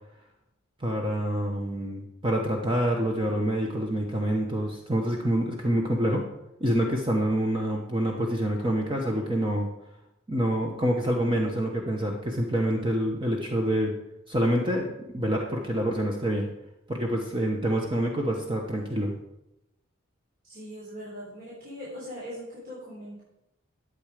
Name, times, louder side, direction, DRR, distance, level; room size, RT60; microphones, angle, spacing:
voice 1, 0.8-6.3 6.6-9.7 10.3-13.9 14.3-16.5 16.9-19.1, right 1 dB, 25° right, 1 dB, 1.0 m, -27 dB
voice 2, 20.5-23.2, equal, 45° right, -8 dB, 3.7 m, -40 dB
12.0 x 7.9 x 5.0 m, 0.89 s
head